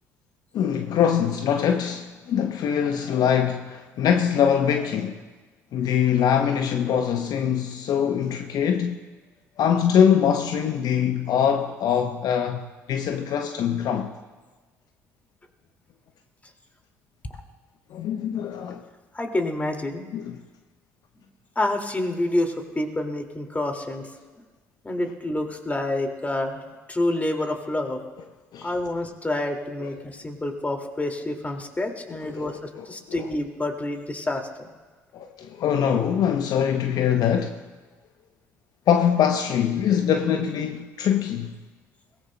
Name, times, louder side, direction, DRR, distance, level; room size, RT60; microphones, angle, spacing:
voice 1, 0.5-5.2 5.7-9.0 9.6-14.1 17.9-18.8 20.1-20.4 28.5-28.7 29.8-29.9 32.3-33.3 35.1-37.6 38.9-41.6, left 8 dB, 60° left, 0.7 m, -23 dB
voice 2, 19.1-20.1 21.2-21.3 21.6-24.1 24.8-26.6 26.9-28.0 28.6-34.7, left 1 dB, 20° left, 2.2 m, -28 dB
22.5 x 18.5 x 2.2 m
hypercardioid pair, 55°, 8 cm